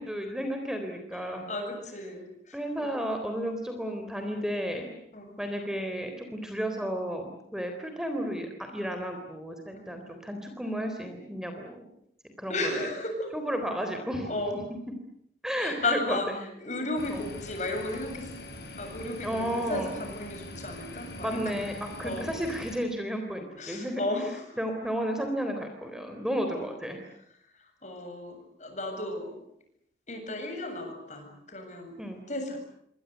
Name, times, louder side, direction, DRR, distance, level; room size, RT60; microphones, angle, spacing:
voice 1, 0.0-1.4 2.5-5.0 5.4-11.8 12.4-12.9 13.3-14.3 15.4-16.4 17.1-17.3 19.2-19.9 21.2-24.0 24.6-27.0 32.0-32.2, equal, 5° right, 5 dB, 3.7 m, -33 dB
voice 2, 1.1-2.9 5.1-5.4 9.7-10.2 12.5-13.3 14.2-14.6 15.6-21.6 22.0-22.3 23.6-24.6 26.5-26.7 27.6-29.4 30.1-32.0 32.3-32.6, left 2 dB, 40° left, 5 dB, 7.7 m, -34 dB
sound 1, 17.0-22.8, left 1 dB, 65° left, 6.4 m, -43 dB
27.5 x 24.5 x 8.2 m, 0.71 s
head